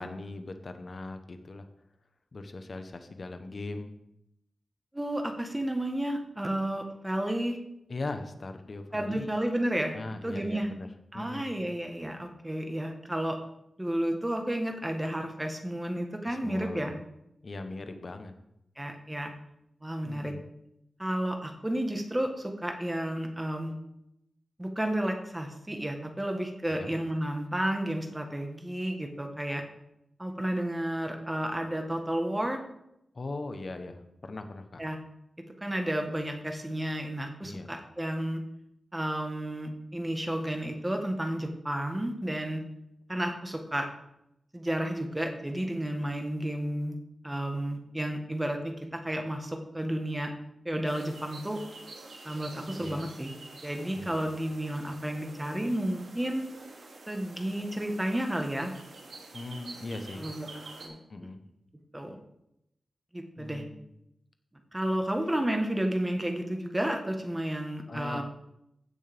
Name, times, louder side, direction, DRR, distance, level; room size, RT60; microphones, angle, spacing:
voice 1, 0.0-1.7 2.3-3.9 7.9-9.3 9.9-10.9 11.1-11.7 16.2-16.9 17.4-18.3 20.0-20.4 26.7-26.9 33.1-34.8 37.4-37.7 52.8-53.0 54.0-54.2 59.3-60.3 61.1-61.4 63.4-63.9 67.9-68.2, left 2 dB, 40° left, 7 dB, 0.9 m, -39 dB
voice 2, 4.9-7.6 8.9-9.9 10.2-10.7 11.1-13.4 13.8-16.9 18.8-19.3 19.8-20.3 21.0-23.7 24.6-29.6 30.2-32.6 34.8-35.0 35.6-38.4 38.9-42.6 43.1-43.9 44.5-47.0 47.2-50.3 50.6-51.6 52.2-53.3 53.6-56.4 57.1-58.7 60.2-60.5 60.8-61.0 61.9-62.2 63.1-63.6 64.7-68.2, right 1 dB, 10° right, 4 dB, 1.2 m, -32 dB
sound 1, 50.9-60.9, right 3 dB, 80° right, 2.1 m, -48 dB
15.5 x 6.4 x 3.5 m, 0.82 s
wide cardioid pair, 150°, 0 cm